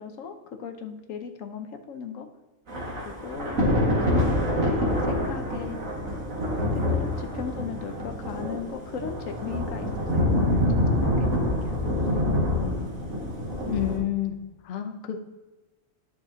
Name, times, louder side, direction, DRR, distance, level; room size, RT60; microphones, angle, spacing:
voice 1, 0.0-2.3 3.0-5.8 6.7-10.7 11.1-12.9, left 6 dB, 75° left, 6 dB, 1.2 m, -37 dB
Thunder / Rain, 2.7-14.0, left 1 dB, 80° right, 2.3 m, -26 dB
voice 2, 13.7-14.4 14.6-15.2, left 12 dB, 55° left, 5 dB, 0.9 m, -29 dB
11.5 x 6.4 x 2.9 m, 1.2 s
omnidirectional pair, 1.4 m